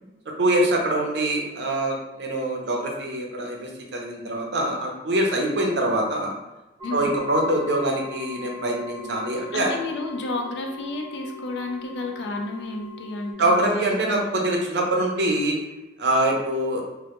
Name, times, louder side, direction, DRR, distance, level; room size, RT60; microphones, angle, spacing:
voice 1, 0.4-6.3 6.9-9.7 13.4-15.6 16.0-16.8, right 1 dB, 65° right, 0 dB, 0.5 m, -24 dB
sound 1, 6.8-13.3, left 2 dB, 10° left, 0.6 m, -39 dB
voice 2, 9.5-14.3, left 2 dB, 65° left, 2 dB, 0.3 m, -31 dB
2.1 x 2.1 x 2.8 m, 1.0 s
head